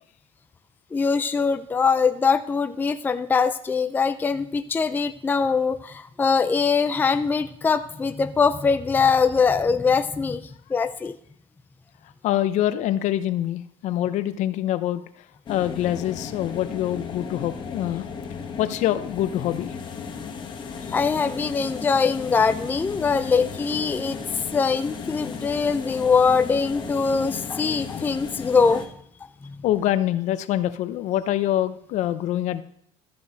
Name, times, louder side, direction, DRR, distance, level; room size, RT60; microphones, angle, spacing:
voice 1, 0.9-11.2 20.9-24.2 24.5-28.9 29.4-29.6, left 5 dB, 15° left, 10 dB, 0.4 m, -22 dB
voice 2, 12.2-15.1 15.5-18.1 18.6-19.7 29.6-32.6, left 12 dB, 60° left, 13 dB, 0.7 m, -25 dB
Train Journey RF, 15.5-28.9, left 6 dB, 35° left, 1.4 m, -35 dB
13.0 x 6.9 x 4.0 m, 0.68 s
cardioid pair, 130°, 14 cm